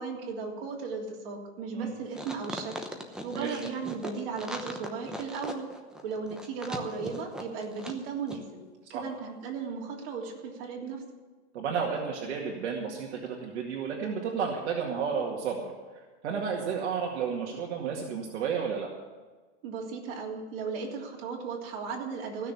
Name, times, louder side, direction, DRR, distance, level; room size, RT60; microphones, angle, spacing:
voice 1, 0.0-2.8 3.2-5.7 6.0-8.6 8.9-11.0 19.6-22.5, right 5 dB, 55° right, -1 dB, 3.3 m, -36 dB
sound 1, 2.1-8.0 8.3-8.4, equal, ahead, 0.9 m, -39 dB
voice 2, 11.5-15.6 15.9-18.9, right 6 dB, 75° right, -1 dB, 2.1 m, -32 dB
15.0 x 6.6 x 9.3 m, 1.3 s
supercardioid pair, 150°, 34 cm